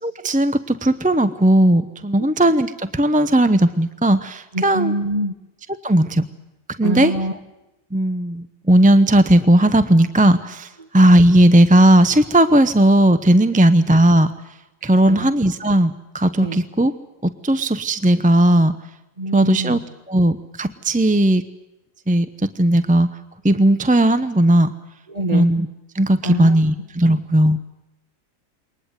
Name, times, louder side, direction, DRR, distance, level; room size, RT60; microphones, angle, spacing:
voice 1, 0.0-4.9 5.8-6.2 6.8-7.1 7.9-14.3 14.8-16.9 17.2-18.7 19.3-19.8 20.1-21.4 22.1-23.1 23.4-24.7 25.3-25.7 25.9-27.6, right 1 dB, 10° right, 11 dB, 0.5 m, -16 dB
voice 2, 4.5-5.3 6.8-7.4 15.0-15.3 16.4-16.6 19.2-19.8 25.1-25.5 26.2-26.6 27.1-27.2, right 1 dB, 30° right, 7 dB, 1.9 m, -25 dB
23.0 x 19.5 x 8.1 m, 0.97 s
omnidirectional pair, 1.4 m